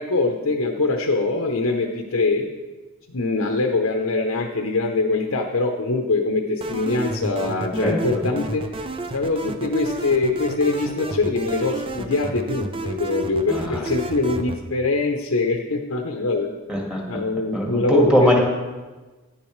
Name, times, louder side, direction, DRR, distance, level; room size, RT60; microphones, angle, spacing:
voice 1, 0.0-2.5 3.1-8.6 9.1-16.5 17.1-18.4, left 3 dB, 85° left, 2 dB, 0.8 m, -23 dB
sound 1, 6.6-14.6, right 2 dB, 25° right, 0.5 m, -31 dB
voice 2, 7.8-8.2 13.5-13.9 16.7-17.0 17.5-18.4, equal, 5° right, -3 dB, 1.8 m, -21 dB
10.5 x 10.5 x 3.2 m, 1.3 s
head